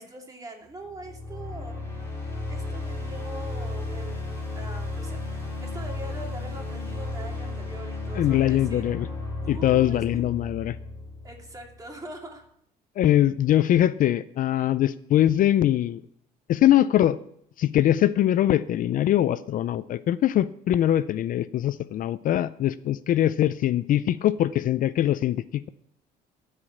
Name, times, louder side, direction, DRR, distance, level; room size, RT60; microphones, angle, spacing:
voice 1, 0.0-1.8 2.5-4.3 4.5-8.9 9.4-10.3 11.2-12.5, right 2 dB, 20° right, 1 dB, 2.6 m, -42 dB
sound 1, 0.9-11.9, left 2 dB, 15° left, 5.2 m, -34 dB
voice 2, 8.2-9.1 9.5-10.8 13.0-16.0 16.5-17.2 17.6-25.7, left 12 dB, 55° left, 15 dB, 0.4 m, -22 dB
14.0 x 5.0 x 7.3 m, 0.72 s
cardioid pair, 110°, 17 cm